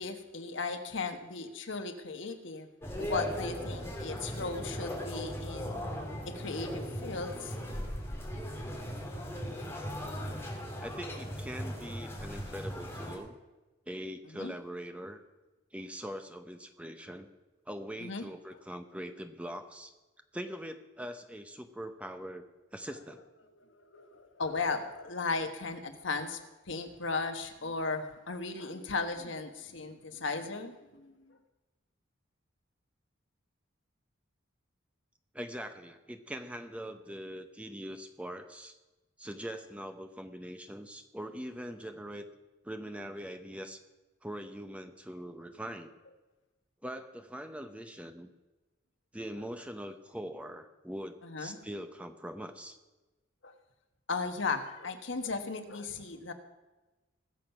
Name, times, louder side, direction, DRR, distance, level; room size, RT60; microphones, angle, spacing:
voice 1, 0.0-2.7 3.0-5.8 6.2-7.8 14.3-14.5 18.0-18.2 23.6-31.4 51.2-51.6 53.4-53.5 54.1-56.3, left 4 dB, 65° left, 7 dB, 1.2 m, -36 dB
sound 1, 2.8-13.2, equal, 10° left, 2.5 m, -38 dB
voice 2, 10.8-13.4 13.9-15.2 15.7-17.3 17.7-19.9 20.3-22.5 22.7-23.2 35.3-38.8 39.2-42.3 42.6-43.8 44.2-45.9 46.8-48.3 49.1-52.8, equal, 5° right, 7 dB, 0.7 m, -42 dB
20.5 x 7.2 x 5.8 m, 1.1 s
head